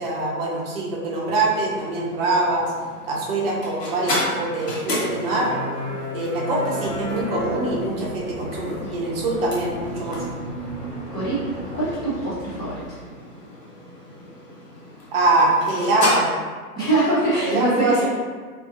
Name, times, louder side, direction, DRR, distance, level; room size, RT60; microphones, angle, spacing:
voice 1, 0.0-2.7 3.1-5.5 6.1-10.2 15.1-16.2 17.4-18.1, right 2 dB, 40° right, -4 dB, 0.8 m, -23 dB
sound 1, 1.1-16.1, equal, 85° left, 1.1 m, -32 dB
sound 2, 6.8-12.9, left 1 dB, 30° left, 1.2 m, -40 dB
voice 2, 11.7-12.8 16.7-18.1, right 2 dB, 10° left, -11 dB, 0.5 m, -23 dB
2.6 x 2.5 x 2.6 m, 1.5 s
hypercardioid pair, 120°, 47 cm